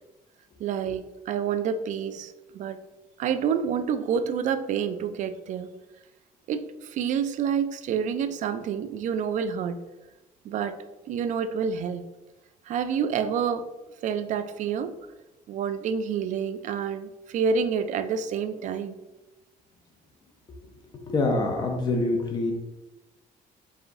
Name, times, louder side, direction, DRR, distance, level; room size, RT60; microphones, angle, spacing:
voice 1, 0.6-2.8 3.2-5.8 6.5-9.8 10.4-10.8 11.1-12.1 12.7-13.7 14.0-14.9 15.5-19.0, right 7 dB, 55° right, 10 dB, 0.4 m, -28 dB
voice 2, 21.1-22.5, left 2 dB, 30° left, 2 dB, 0.5 m, -25 dB
4.9 x 3.5 x 2.6 m, 1.1 s
cardioid pair, 140°, 16 cm